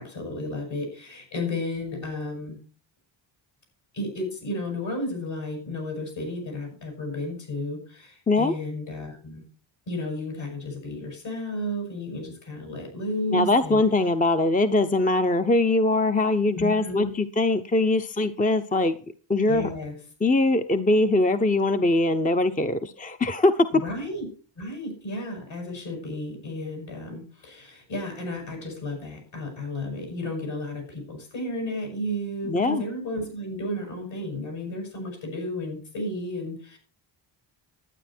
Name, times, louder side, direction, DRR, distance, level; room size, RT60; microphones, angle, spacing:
voice 1, 0.0-2.6 3.9-9.5 9.9-13.8 16.5-17.1 19.5-20.0 23.7-24.3 24.6-36.8, left 1 dB, 65° left, 3 dB, 7.1 m, -33 dB
voice 2, 13.3-19.0 19.3-19.7 20.2-23.7 32.5-32.8, left 2 dB, 15° left, 9 dB, 0.8 m, -22 dB
12.0 x 9.5 x 4.4 m, 0.37 s
cardioid pair, 100°, 49 cm